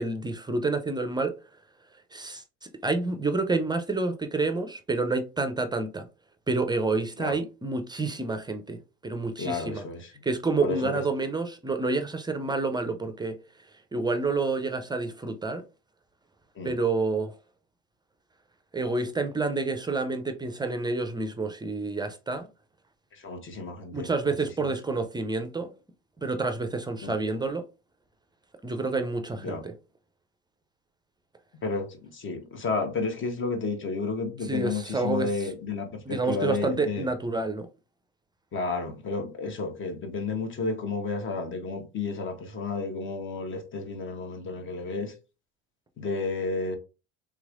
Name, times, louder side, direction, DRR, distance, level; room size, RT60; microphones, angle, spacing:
voice 1, 0.0-1.3 2.1-2.4 2.8-6.0 6.5-9.8 10.2-13.4 13.9-15.6 16.6-17.3 18.7-22.5 23.9-25.7 26.2-27.6 28.6-29.7 34.5-35.3 36.1-37.7, right 3 dB, 15° right, 0.5 m, -28 dB
voice 2, 9.4-10.1 10.6-11.0 16.5-16.7 23.1-24.7 27.0-27.2 29.4-29.6 31.6-37.1 38.5-45.1 46.0-46.8, left 4 dB, 40° left, 1.1 m, -32 dB
3.5 x 3.0 x 2.5 m
hypercardioid pair, 85°, 32 cm